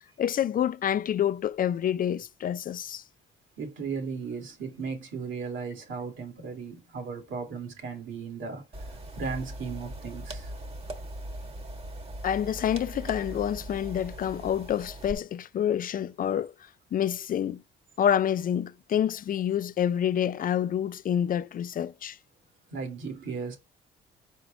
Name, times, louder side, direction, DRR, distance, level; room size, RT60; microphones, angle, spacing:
voice 1, 0.2-3.0 12.2-16.5 16.9-17.6 18.0-22.2, left 9 dB, 45° left, 0.4 m, -27 dB
voice 2, 3.6-8.6 9.2-10.5 22.7-23.6, right 5 dB, 70° right, 2.3 m, -36 dB
sound 1, 8.7-15.1, right 1 dB, 30° right, 1.3 m, -40 dB
4.9 x 4.5 x 4.9 m
cardioid pair, 90°, 20 cm